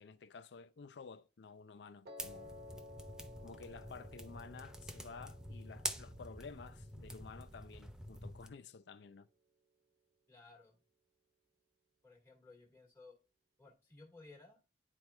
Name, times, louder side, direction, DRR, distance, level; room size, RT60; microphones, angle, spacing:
voice 1, 0.0-2.6 3.4-9.3, left 5 dB, 75° left, 0.4 m, -53 dB
Piano, 2.1-8.2, left 2 dB, 60° right, 1.1 m, -56 dB
sound 1, 2.2-8.5, equal, 5° right, 0.6 m, -47 dB
voice 2, 10.3-10.8 12.0-13.2 13.6-14.6, left 3 dB, 15° left, 1.6 m, -58 dB
11.0 x 4.4 x 2.2 m
head